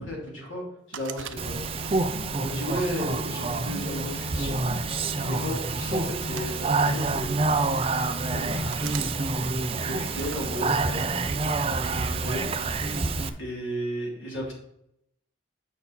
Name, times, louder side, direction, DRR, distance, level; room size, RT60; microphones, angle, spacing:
voice 1, 0.0-1.9 2.3-4.6 5.1-9.2 9.8-11.5 11.9-12.5 13.4-14.5, equal, 90° left, -2 dB, 3.0 m, -35 dB
sound 1, 0.9-2.0 2.6-3.8 4.7-5.0 6.0-7.1 7.8-7.9 8.7-9.1 10.1-10.5, right 8 dB, 80° right, 0.6 m, -41 dB
Speech, 1.4-13.3, right 3 dB, 30° right, 0.5 m, -28 dB
sound 2, 2.0-13.3, equal, 10° right, 0.9 m, -40 dB
8.5 x 5.7 x 4.2 m, 0.78 s
head